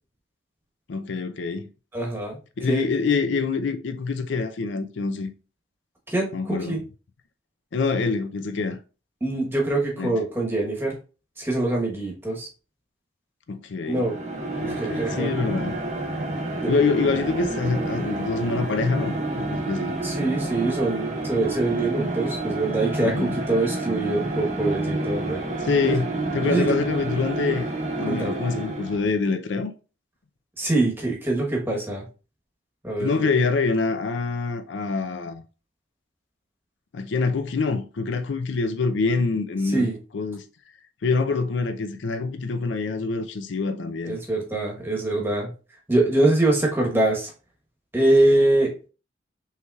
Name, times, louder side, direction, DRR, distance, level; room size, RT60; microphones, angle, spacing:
voice 1, 0.9-1.7 2.6-5.3 6.3-6.8 7.7-8.8 10.0-10.2 13.5-14.0 14.6-15.8 16.7-19.9 23.0-23.4 25.6-26.1 26.3-27.7 28.0-29.7 33.0-35.4 36.9-40.4 41.0-44.2, left 4 dB, 85° left, 0.5 m, -25 dB
voice 2, 1.9-2.4 2.7-2.8 6.1-6.8 9.2-11.0 11.4-12.5 13.9-14.2 14.7-15.3 16.6-16.7 20.0-25.4 25.8-25.9 26.4-26.7 28.1-28.4 30.6-32.0 32.8-33.3 39.7-40.0 44.0-45.5 45.9-47.3 47.9-48.7, right 2 dB, 10° right, 1.1 m, -24 dB
sound 1, 13.8-29.1, right 2 dB, 40° right, 0.8 m, -29 dB
5.6 x 3.2 x 2.3 m
head